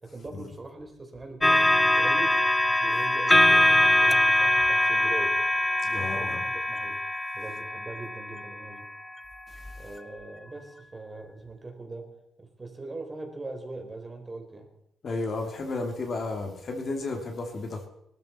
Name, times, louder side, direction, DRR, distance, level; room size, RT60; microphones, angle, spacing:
voice 1, 0.0-2.4 2.8-5.4 5.8-7.0 7.3-8.9 9.8-12.1 12.4-14.7, right 2 dB, 25° right, 3 dB, 3.8 m, -41 dB
sound 1, 1.4-8.9 9.6-9.8, left 1 dB, 10° left, 0.5 m, -23 dB
voice 2, 5.9-6.4 9.5-9.8 15.0-17.9, left 3 dB, 45° left, 3 dB, 2.7 m, -33 dB
19.5 x 13.0 x 4.4 m, 0.78 s
cardioid pair, 90°, 0 cm